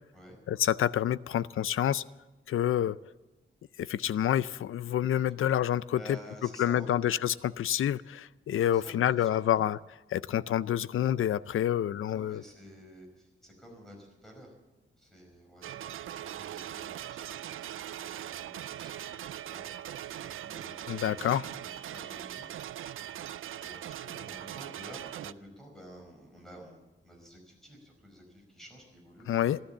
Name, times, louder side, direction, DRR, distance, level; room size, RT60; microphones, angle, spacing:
voice 1, 0.5-2.0 2.5-3.0 3.8-6.2 6.6-9.8 10.1-12.4 20.9-21.5 29.3-29.6, left 11 dB, 85° left, 17 dB, 0.5 m, -28 dB
voice 2, 5.9-7.2 8.7-9.6 12.1-14.5 15.0-15.8 16.2-17.4 18.0-21.3 21.9-22.5 23.6-29.6, equal, ahead, 0 dB, 5.2 m, -51 dB
sound 1, 15.6-25.3, right 11 dB, 75° right, 0.4 m, -41 dB
14.0 x 13.0 x 7.3 m, 1.1 s
wide cardioid pair, 150°, 21 cm